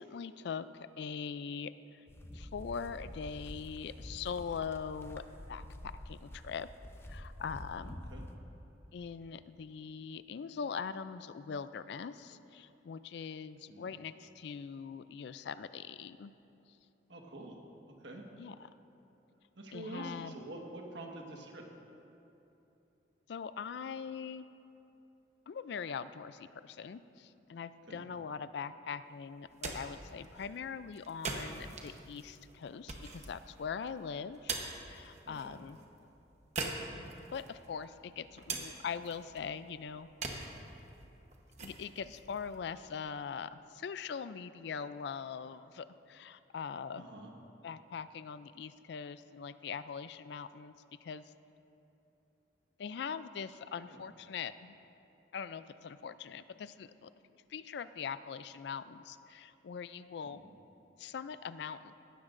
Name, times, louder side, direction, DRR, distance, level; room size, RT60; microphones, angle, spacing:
voice 1, 0.0-2.0 2.3-5.2 5.5-6.7 7.1-8.0 8.9-16.3 18.3-18.5 19.7-20.3 23.3-24.5 25.5-34.5 34.9-35.8 37.3-40.1 40.3-40.5 41.6-47.0 47.6-50.7 51.0-51.2 52.8-54.8 55.3-57.1 57.5-60.4 61.0-62.0, left 6 dB, 65° left, 14 dB, 0.3 m, -42 dB
sound 1, 2.1-8.4, left 1 dB, 15° left, 0.5 m, -47 dB
voice 2, 7.8-8.2 13.7-13.9 17.1-17.6 17.8-18.2 19.6-21.6 27.9-28.0 35.2-35.6 47.0-47.3 53.8-54.0 60.3-60.5, right 1 dB, 70° right, 0 dB, 1.5 m, -47 dB
sound 2, 29.3-43.3, right 3 dB, 40° right, 1.0 m, -44 dB
17.0 x 12.5 x 2.6 m, 2.8 s
head